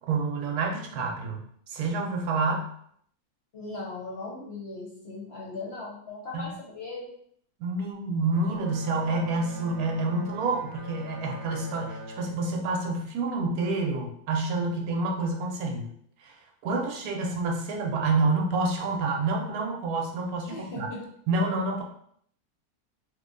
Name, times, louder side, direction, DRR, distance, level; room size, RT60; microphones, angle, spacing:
voice 1, 0.1-1.4 1.7-2.7 6.3-6.4 7.6-15.9 16.2-20.9 21.3-21.8, right 3 dB, 75° right, 2 dB, 1.0 m, -28 dB
voice 2, 3.5-7.1 20.5-21.0, left 2 dB, 55° left, -4 dB, 0.8 m, -38 dB
Bowed string instrument, 8.3-13.8, equal, 45° right, 0.9 m, -43 dB
3.1 x 2.2 x 3.6 m, 0.66 s
omnidirectional pair, 1.7 m